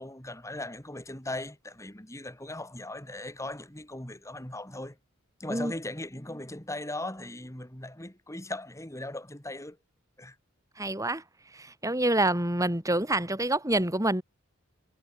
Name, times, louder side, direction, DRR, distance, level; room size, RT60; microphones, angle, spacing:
voice 1, 0.0-5.0 5.4-9.8 10.2-10.4, left 1 dB, 15° left, 3.2 m, -38 dB
voice 2, 10.8-11.2 11.5-14.2, right 1 dB, 15° right, 4.4 m, -27 dB
head